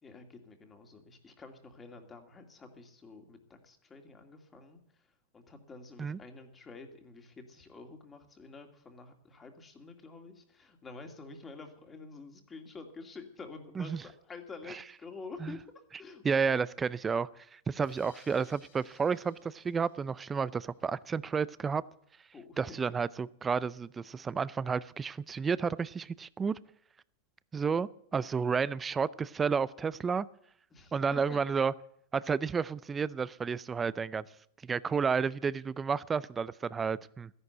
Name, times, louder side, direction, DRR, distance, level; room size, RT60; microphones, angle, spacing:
voice 1, 0.0-16.2 22.3-22.8 30.7-31.4, left 4 dB, 20° left, 5 dB, 2.4 m, -49 dB
voice 2, 16.2-21.8 22.6-26.6 27.5-30.3 30.9-31.7 32.1-34.2 34.6-37.3, right 5 dB, 15° right, 19 dB, 0.5 m, -31 dB
sound 1, 17.8-21.2, left 8 dB, 70° left, 6.0 m, -64 dB
14.0 x 11.0 x 7.9 m, 0.69 s
hypercardioid pair, 120°, 0 cm